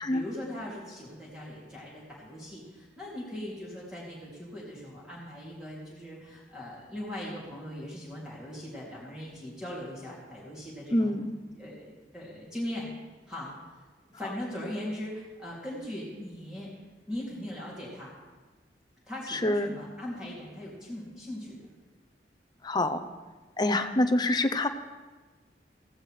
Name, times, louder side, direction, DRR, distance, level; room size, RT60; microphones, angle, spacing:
voice 1, 0.1-11.2 11.5-12.9 13.3-13.5 14.1-16.7 17.1-18.1 19.1-21.6, left 1 dB, 5° right, -7 dB, 2.8 m, -39 dB
voice 2, 10.9-11.3 19.3-19.7 22.6-23.0 23.6-24.7, left 1 dB, 25° left, 8 dB, 0.7 m, -26 dB
16.5 x 15.5 x 3.3 m, 1.3 s
head